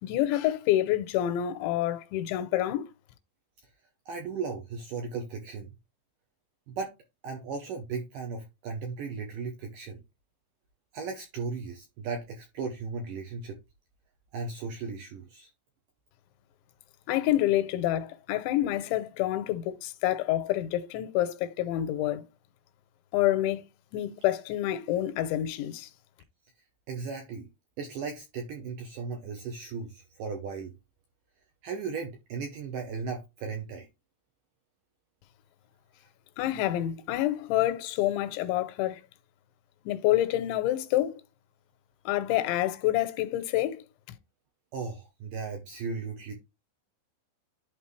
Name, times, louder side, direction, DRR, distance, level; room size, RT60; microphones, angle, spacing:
voice 1, 0.0-2.9 17.1-22.2 23.1-23.6 23.9-25.9 36.4-39.0 39.9-41.2 42.1-43.8, left 13 dB, 85° left, 3.0 m, -27 dB
voice 2, 4.1-5.7 6.7-6.9 7.2-10.0 10.9-13.6 14.3-15.5 26.9-27.5 27.8-30.7 31.6-33.9 44.7-46.3, right 5 dB, 80° right, 1.9 m, -36 dB
11.0 x 4.0 x 3.2 m
omnidirectional pair, 5.3 m